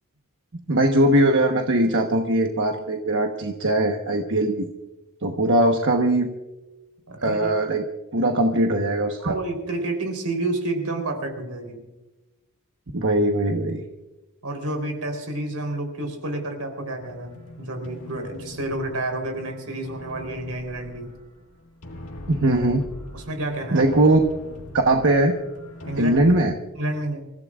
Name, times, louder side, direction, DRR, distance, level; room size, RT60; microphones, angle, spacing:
voice 1, 0.7-4.7 5.2-6.3 7.2-7.8 8.1-9.3 12.9-13.8 22.3-22.8 23.7-24.2 24.9-25.3 26.0-26.5, right 1 dB, 60° right, 3 dB, 1.2 m, -20 dB
voice 2, 7.1-7.5 9.2-11.8 14.4-21.1 23.1-23.8 25.9-26.1 26.8-27.3, right 2 dB, 85° right, 5 dB, 3.8 m, -29 dB
sound 1, 17.0-26.5, left 1 dB, 80° left, 1.8 m, -41 dB
28.0 x 16.0 x 2.5 m, 1.1 s
head